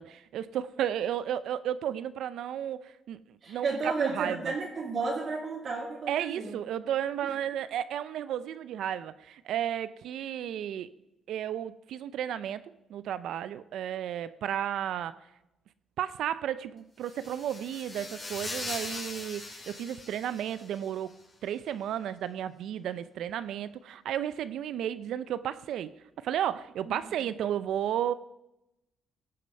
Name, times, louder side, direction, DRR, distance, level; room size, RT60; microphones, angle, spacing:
voice 1, 0.0-3.2 3.5-4.5 6.1-10.9 11.3-12.6 12.9-15.2 16.0-21.1 21.4-25.9 26.2-28.1, right 10 dB, 75° right, 15 dB, 0.4 m, -33 dB
voice 2, 3.4-6.5 7.2-7.3 26.9-27.0, right 4 dB, 50° right, -3 dB, 2.2 m, -32 dB
sound 1, 17.0-20.9, left 2 dB, 25° left, 2.4 m, -40 dB
17.5 x 6.6 x 5.2 m, 0.91 s
cardioid pair, 90°, 0 cm